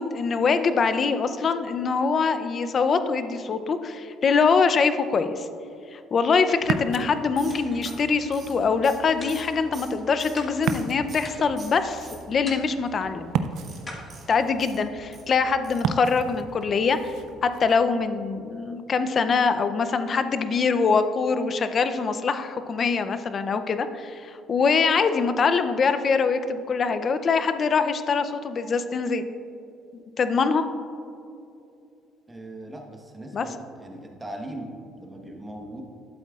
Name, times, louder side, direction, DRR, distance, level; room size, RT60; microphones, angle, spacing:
voice 1, 0.0-5.5 5.9-13.3 14.3-17.1 17.4-29.2 29.9-30.6 33.3-33.5, left 5 dB, 40° left, 10 dB, 0.5 m, -23 dB
Ocean, 6.6-17.7, right 7 dB, 75° right, 0.4 m, -35 dB
sound 1, 7.4-11.3 11.6-12.6 13.5-15.2 15.6-15.9 16.2-16.3 16.6-16.7, right 4 dB, 40° right, 2.1 m, -46 dB
sound 2, 7.5-8.4 9.2-10.0 10.4-10.8 11.2-11.8 12.5-13.0 13.9-14.8, left 2 dB, 25° left, 1.6 m, -43 dB
voice 2, 32.3-35.8, right 1 dB, 15° right, 1 dB, 1.2 m, -39 dB
12.0 x 7.9 x 2.4 m, 2.6 s
cardioid pair, 110°, 0 cm